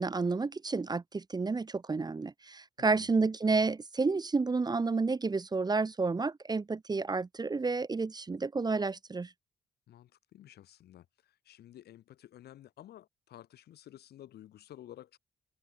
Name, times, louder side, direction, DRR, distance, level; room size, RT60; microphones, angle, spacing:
voice 1, 0.0-9.3, right 4 dB, 25° right, 0.6 m, -30 dB
voice 2, 2.8-3.1 9.9-15.2, left 12 dB, 85° left, 2.3 m, -53 dB
cardioid pair, 65°, 16 cm